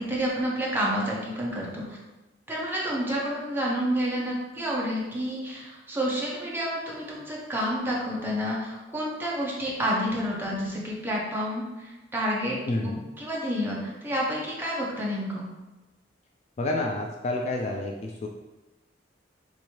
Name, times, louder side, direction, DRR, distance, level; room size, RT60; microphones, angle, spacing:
voice 1, 0.0-2.0 2.5-12.6 12.8-15.5, equal, 10° right, -5 dB, 0.8 m, -29 dB
voice 2, 12.6-13.0 16.6-18.3, left 2 dB, 35° left, 1 dB, 0.3 m, -29 dB
3.0 x 2.7 x 4.3 m, 1.1 s
head